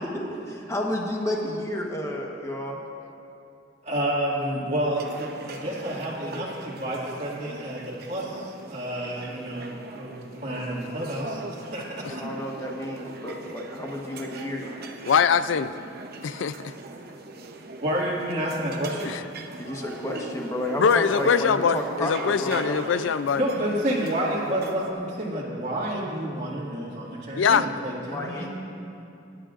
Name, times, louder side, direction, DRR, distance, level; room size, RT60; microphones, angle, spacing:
voice 1, 0.1-2.8 12.2-14.7 19.6-22.8 28.0-28.5, left 1 dB, 15° left, -1 dB, 1.2 m, -31 dB
voice 2, 3.8-10.1 10.4-12.1 17.8-19.2 23.3-28.5, right 1 dB, 35° right, -8 dB, 2.1 m, -29 dB
sound 1, 4.9-24.9, right 2 dB, 55° right, 0.8 m, -41 dB
voice 3, 15.1-15.7 16.2-16.7 19.0-19.2 20.8-23.4 27.4-27.7, left 6 dB, 85° left, 13 dB, 0.4 m, -22 dB
25.0 x 11.5 x 2.5 m, 2.6 s
head